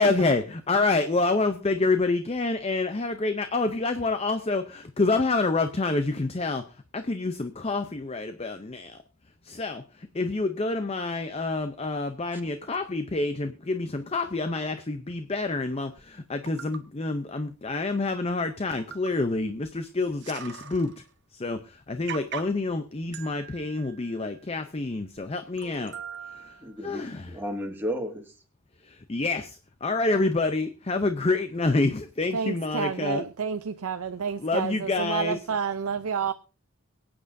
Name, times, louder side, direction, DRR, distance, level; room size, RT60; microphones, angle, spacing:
voice 1, 0.0-6.6 6.9-9.0 9.4-9.8 10.1-20.9 21.3-25.9 26.3-26.5 26.8-27.3 28.9-33.2 34.4-35.4, left 3 dB, 25° left, 0.5 m, -27 dB
sound 1, 16.0-16.1 16.5-16.8 17.8-17.9 18.3-18.4 18.8-19.3 19.6-19.7 20.0-21.1 21.5-21.6 22.1-22.7 23.1-24.7 25.2-25.3 25.6-26.9 27.5-27.6, right 8 dB, 50° right, 0.9 m, -41 dB
voice 2, 26.6-28.3, equal, 10° right, 1.9 m, -33 dB
voice 3, 32.3-36.3, right 6 dB, 80° right, 0.5 m, -30 dB
23.0 x 8.7 x 2.6 m
head